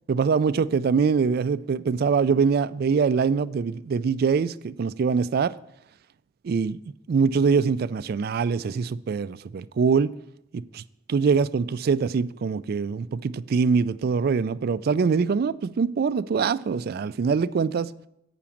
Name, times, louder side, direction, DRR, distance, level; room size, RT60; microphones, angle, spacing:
voice 1, 0.1-5.6 6.4-6.8 7.1-10.1 10.5-10.8 11.1-17.9, right 5 dB, 55° right, 0.3 m, -23 dB
8.7 x 5.9 x 7.1 m
head